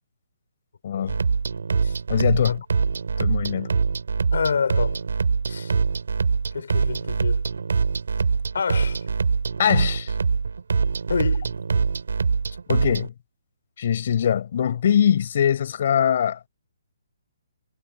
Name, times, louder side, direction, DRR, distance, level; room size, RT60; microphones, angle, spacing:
sound 1, 1.1-13.1, right 5 dB, 90° right, 5.2 m, -24 dB
voice 1, 2.1-2.6 3.2-3.7 9.6-10.1 12.7-13.1 13.8-16.5, left 9 dB, 50° left, 5.8 m, -22 dB
voice 2, 4.3-5.0 5.5-5.7 6.5-7.4 8.5-9.0 11.1-11.6, left 6 dB, 75° left, 5.5 m, -27 dB
hypercardioid pair, 165°, 0 cm